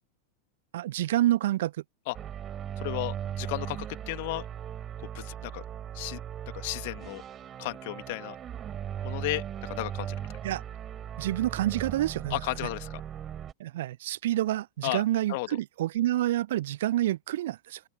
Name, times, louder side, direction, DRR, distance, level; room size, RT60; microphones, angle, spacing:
voice 1, 0.7-1.7 10.4-10.6 11.2-12.4 13.6-17.8, right 14 dB, 55° right, 0.8 m, -28 dB
sound 1, 2.1-13.5, right 10 dB, 25° right, 4.6 m, -38 dB
voice 2, 2.8-4.5 5.1-5.6 5.9-6.2 6.5-7.2 7.6-8.4 9.0-10.3 12.3-13.0 14.8-15.0 15.3-15.5, left 23 dB, 50° left, 2.0 m, -34 dB
open air
figure-of-eight pair, 90°, 0 cm